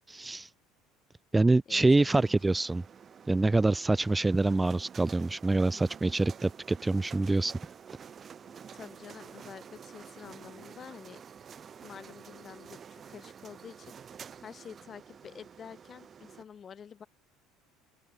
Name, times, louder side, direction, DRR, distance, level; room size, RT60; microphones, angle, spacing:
voice 1, 0.1-0.5 1.3-2.8 3.3-7.5, right 2 dB, 15° right, 0.6 m, -25 dB
voice 2, 1.7-2.4 8.4-11.2 11.8-17.1, left 7 dB, 35° left, 5.1 m, -48 dB
sound 1, 2.0-16.4, right 7 dB, 35° right, 3.0 m, -49 dB
open air
figure-of-eight pair, 65°, 0 cm